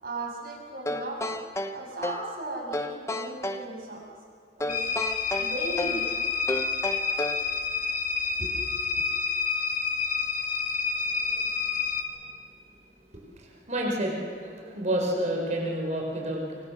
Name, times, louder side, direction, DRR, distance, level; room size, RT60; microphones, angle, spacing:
voice 1, 0.0-1.4 1.7-4.0 4.6-4.8 5.4-6.2 8.4-9.0, right 2 dB, 60° right, -1 dB, 7.2 m, -37 dB
sound 1, 0.9-2.3 2.7-3.7 4.6-6.1 6.5-7.5, left 1 dB, 15° left, 1.1 m, -32 dB
sound 2, 4.7-12.0, left 5 dB, 45° left, 2.6 m, -29 dB
voice 2, 13.4-16.4, right 1 dB, 40° right, 0 dB, 5.1 m, -29 dB
25.5 x 24.0 x 6.6 m, 2.1 s
head